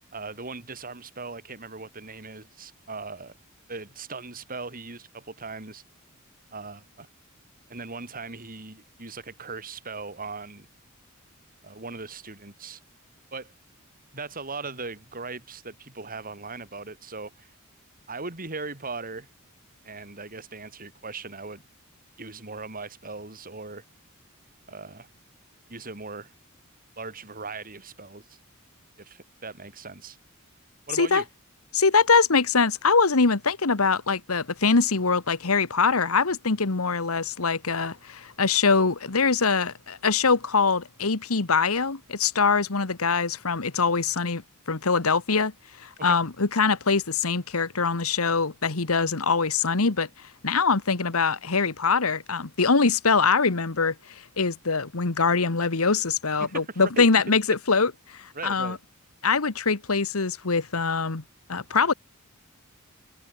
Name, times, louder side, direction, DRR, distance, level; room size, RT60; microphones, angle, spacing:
voice 1, 0.1-3.3 3.7-5.8 6.5-7.1 7.7-10.7 11.6-12.8 13.3-13.5 14.1-17.5 18.1-19.3 19.8-21.6 22.2-23.8 24.7-25.1 25.7-26.3 27.0-28.2 29.0-30.2 30.9-31.3 46.0-46.2 56.4-57.1 58.3-58.8, right 3 dB, 40° right, 4.2 m, -39 dB
voice 2, 31.7-44.4 44.7-45.5 45.8-50.1 50.4-58.8 59.2-61.2 61.5-61.9, left 4 dB, 90° left, 1.4 m, -23 dB
head